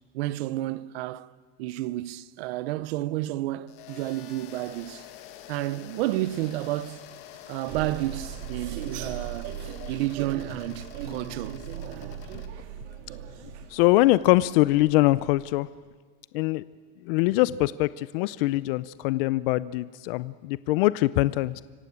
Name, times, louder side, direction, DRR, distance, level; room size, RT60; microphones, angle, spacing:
voice 1, 0.1-1.3 1.6-5.1 5.5-7.0 7.5-9.6 9.9-11.6, right 16 dB, 65° right, 0.8 m, -31 dB
sound 1, 3.7-12.5, left 11 dB, 40° left, 1.7 m, -47 dB
sound 2, 7.7-15.5, right 9 dB, 85° right, 2.3 m, -38 dB
voice 2, 13.7-15.7 16.3-16.6 17.0-21.6, left 18 dB, 60° left, 0.6 m, -23 dB
25.5 x 16.5 x 8.7 m
supercardioid pair, 170°, 33 cm